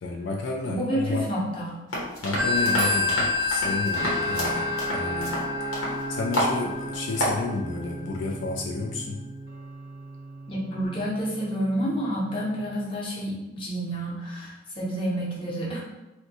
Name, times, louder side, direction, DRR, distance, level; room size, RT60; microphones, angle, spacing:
voice 1, 0.0-1.3 2.2-9.2, left 3 dB, 65° left, 0 dB, 0.3 m, -31 dB
voice 2, 0.7-1.8 10.5-15.8, right 1 dB, 25° left, -5 dB, 0.7 m, -29 dB
sound 1, 1.9-6.0 6.3-6.6 6.9-7.4, equal, 80° left, 0.9 m, -29 dB
Telephone, 2.4-7.7, left 4 dB, 85° right, 0.7 m, -28 dB
sound 2, 3.9-12.9, right 2 dB, 50° right, 0.4 m, -37 dB
2.6 x 2.2 x 4.0 m, 1.1 s
head